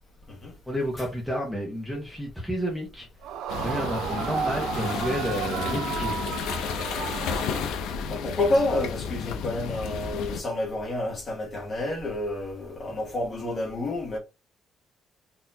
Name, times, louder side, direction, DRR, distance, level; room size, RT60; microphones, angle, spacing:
voice 1, 0.7-3.1 3.6-6.2, equal, ahead, 0.9 m, -30 dB
Yell / Screaming, 3.2-8.1, right 8 dB, 80° right, 0.3 m, -33 dB
sound 1, 3.5-10.4, left 7 dB, 85° left, 0.5 m, -32 dB
voice 2, 7.6-14.2, left 2 dB, 25° left, 1.3 m, -29 dB
4.0 x 2.8 x 2.7 m
cardioid pair, 175°, 0 cm